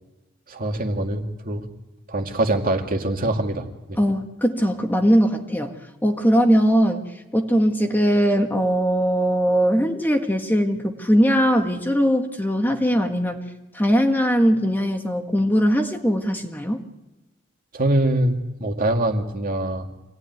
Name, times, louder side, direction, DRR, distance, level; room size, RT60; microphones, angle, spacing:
voice 1, 0.5-1.6 2.1-4.0 17.7-19.9, right 1 dB, 45° right, 3 dB, 2.4 m, -24 dB
voice 2, 4.0-5.7 6.0-7.0 7.3-13.4 13.7-16.8, equal, 10° left, 4 dB, 1.6 m, -20 dB
26.0 x 18.0 x 9.5 m, 1.0 s
head